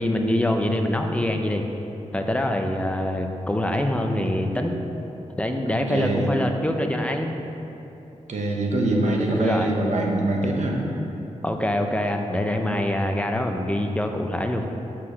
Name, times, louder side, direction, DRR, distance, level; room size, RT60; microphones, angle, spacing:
voice 1, 0.0-1.6 2.1-4.7 5.4-7.4 9.3-9.7 11.4-14.6, left 1 dB, 10° left, 4 dB, 0.5 m, -24 dB
voice 2, 5.9-6.3 8.3-10.8, right 2 dB, 80° right, 0 dB, 1.1 m, -24 dB
6.2 x 5.8 x 6.3 m, 3.0 s
wide cardioid pair, 130°, 12 cm